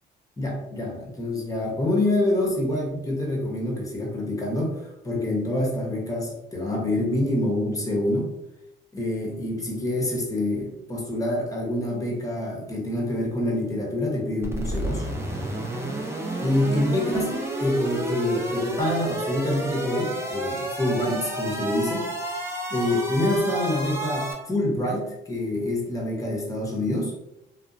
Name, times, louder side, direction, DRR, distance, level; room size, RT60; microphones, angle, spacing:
voice 1, 0.4-8.3 8.9-15.0 16.4-22.1 22.7-27.1, left 1 dB, 15° left, -1 dB, 0.8 m, -26 dB
Sawtooth Motoriser, 14.4-24.3, right 1 dB, 15° right, 0.6 m, -31 dB
2.8 x 2.0 x 2.4 m, 0.86 s
cardioid pair, 90°, 20 cm